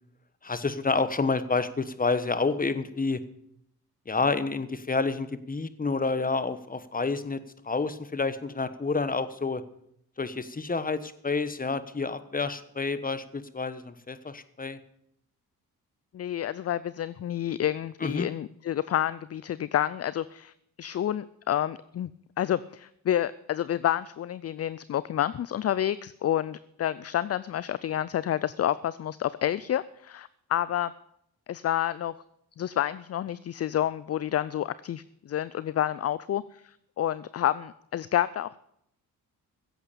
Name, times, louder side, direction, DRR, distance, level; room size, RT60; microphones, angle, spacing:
voice 1, 0.4-3.2 4.1-9.6 10.2-14.8 18.0-18.3, left 4 dB, 25° left, 13 dB, 1.2 m, -29 dB
voice 2, 16.1-20.5 20.8-22.1 22.4-30.9 31.5-32.1 32.6-38.6, left 11 dB, 40° left, 18 dB, 0.5 m, -29 dB
16.0 x 8.1 x 6.9 m, 0.74 s
cardioid pair, 70°, 37 cm